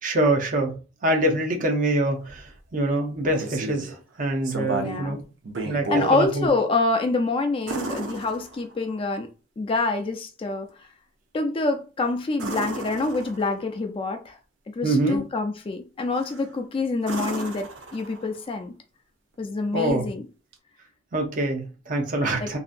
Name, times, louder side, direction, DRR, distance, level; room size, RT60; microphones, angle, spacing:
voice 1, 0.0-0.8 1.0-5.2 5.6-6.5 14.8-15.2 19.7-20.1 21.1-22.6, right 1 dB, 45° right, 0.7 m, -25 dB
sound 1, 3.1-4.0 4.4-5.1 5.4-6.2 7.7-8.9 12.3-13.7 16.1-16.5 17.0-18.4 20.5-20.6, right 3 dB, 85° right, 0.6 m, -33 dB
voice 2, 4.7-5.2 5.9-9.3 9.6-10.7 11.3-14.4 14.8-18.7 19.4-20.3 22.4-22.6, left 3 dB, 30° left, 0.3 m, -26 dB
2.8 x 2.4 x 2.5 m
head